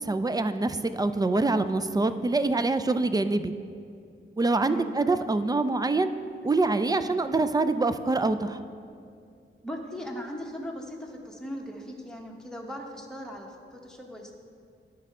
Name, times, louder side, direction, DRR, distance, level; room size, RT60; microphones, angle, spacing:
voice 1, 0.0-3.5 4.4-6.1 6.4-8.6, right 3 dB, 20° right, 10 dB, 0.3 m, -25 dB
voice 2, 9.6-14.4, equal, 5° left, 0 dB, 1.1 m, -38 dB
11.0 x 5.4 x 3.7 m, 2.3 s
cardioid pair, 75°, 21 cm